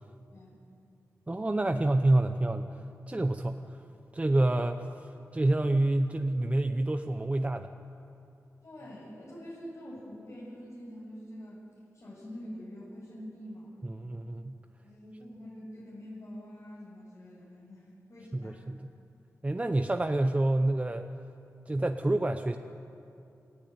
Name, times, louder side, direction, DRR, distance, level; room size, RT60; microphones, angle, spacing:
voice 1, 1.3-2.8 3.1-3.6 4.1-4.9 5.3-7.7 13.8-14.6 18.3-18.9 19.4-21.1 21.7-22.6, right 2 dB, 20° right, 6 dB, 0.8 m, -27 dB
voice 2, 8.6-11.6 11.9-13.9 14.8-18.6, equal, 55° left, -7 dB, 7.9 m, -45 dB
27.0 x 16.0 x 9.7 m, 2.8 s
wide cardioid pair, 90°, 6 cm